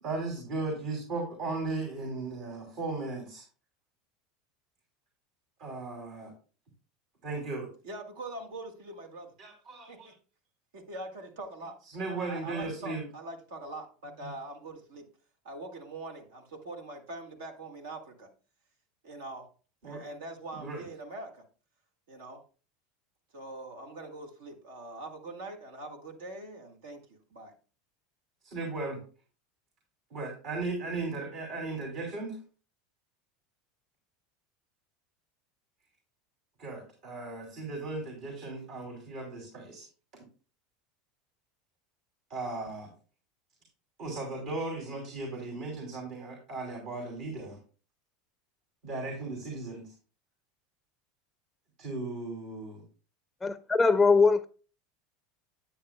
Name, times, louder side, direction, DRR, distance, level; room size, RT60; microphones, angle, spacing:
voice 1, 0.0-3.4 5.6-6.3 7.2-7.7 9.4-10.1 11.9-13.0 14.2-14.3 19.8-20.0 20.5-20.8 28.4-29.0 30.1-32.4 36.6-39.8 42.3-42.9 44.0-47.6 48.8-49.9 51.8-52.8, right 3 dB, 60° right, -1 dB, 2.8 m, -36 dB
voice 2, 7.8-9.3 9.9-10.1 10.7-11.8 12.1-15.1 15.4-18.3 19.0-19.5 19.8-21.5 22.1-22.4 23.3-27.5, right 2 dB, 80° right, 4 dB, 1.8 m, -43 dB
voice 3, 53.4-54.5, left 4 dB, 10° left, 11 dB, 0.5 m, -22 dB
10.0 x 8.7 x 2.2 m, 0.37 s
hypercardioid pair, 95°, 0 cm